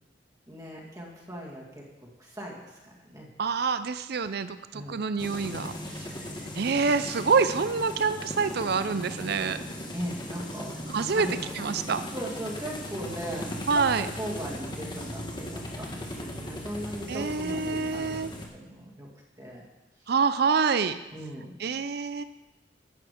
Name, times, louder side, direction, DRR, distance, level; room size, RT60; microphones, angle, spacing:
voice 1, 0.5-3.3 4.7-5.0 6.0-6.6 9.9-10.8 11.1-11.7 12.1-18.2 18.5-19.1 19.4-19.6 21.1-21.6, equal, 20° right, -3 dB, 2.1 m, -39 dB
voice 2, 3.4-5.7 6.6-9.6 10.9-11.3 11.6-12.0 13.7-14.1 17.1-18.3 20.1-21.0 21.6-22.2, right 5 dB, 55° right, 12 dB, 0.5 m, -26 dB
sound 1, 5.2-18.5, left 1 dB, 25° left, 1.3 m, -38 dB
11.0 x 8.6 x 5.0 m, 1.0 s
head